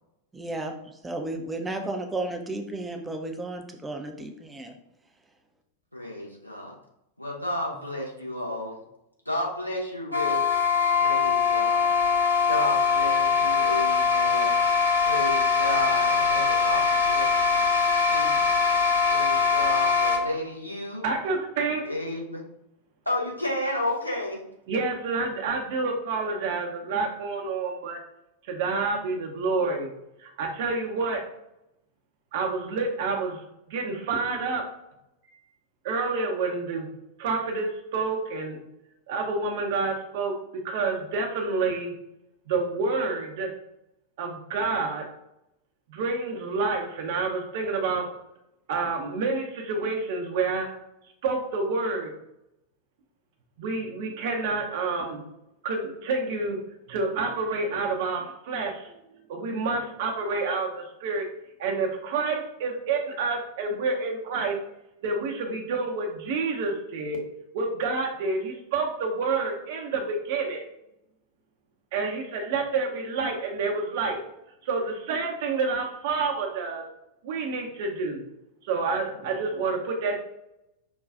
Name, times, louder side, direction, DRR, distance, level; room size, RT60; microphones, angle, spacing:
voice 1, 0.3-4.8, right 2 dB, 10° right, 4 dB, 0.5 m, -33 dB
voice 2, 5.9-6.8 7.2-8.8 9.3-10.4 11.0-11.8 12.5-14.7 15.0-17.7 18.1-18.3 19.1-21.0 21.8-22.4 23.1-24.4, left 1 dB, 90° left, -2 dB, 0.7 m, -32 dB
sound 1, 10.1-20.2, left 5 dB, 90° right, 0.6 m, -22 dB
voice 3, 21.0-21.8 24.7-28.0 28.5-29.9 30.2-31.2 32.3-33.4 33.7-34.6 35.8-36.9 37.2-38.6 39.1-40.3 40.6-41.9 42.5-43.5 44.2-45.0 45.9-48.1 48.7-50.7 51.2-52.1 53.6-55.2 55.6-56.6 56.9-58.9 59.3-61.3 61.6-64.6 65.0-67.2 67.5-70.6 71.9-74.2 74.6-76.8 77.2-78.2 78.6-80.2, right 4 dB, 50° right, 2 dB, 0.7 m, -28 dB
5.1 x 2.3 x 2.4 m, 0.84 s
figure-of-eight pair, 90°, 0 cm